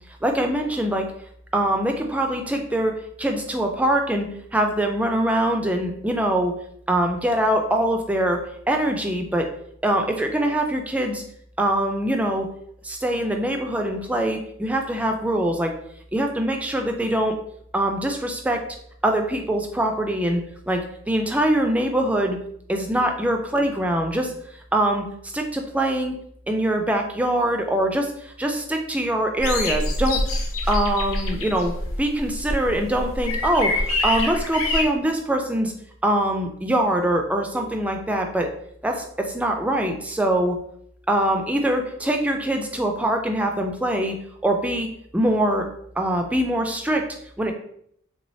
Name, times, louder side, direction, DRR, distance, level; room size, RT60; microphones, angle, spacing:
voice 1, 0.2-1.1 1.5-2.9 3.2-6.5 6.9-9.5 9.8-11.2 11.6-12.5 12.8-15.7 16.1-17.3 17.7-18.6 19.0-20.4 20.7-22.4 22.7-24.3 24.7-26.2 26.5-30.2 30.7-31.7 32.0-35.7 36.0-38.5 38.8-40.6 41.1-44.2 44.4-44.9 45.1-45.7 46.0-47.0 47.4-47.5, right 1 dB, 5° right, 3 dB, 0.3 m, -23 dB
sound 1, 29.4-34.8, left 2 dB, 75° left, 0.6 m, -26 dB
3.3 x 3.1 x 2.6 m, 0.69 s
head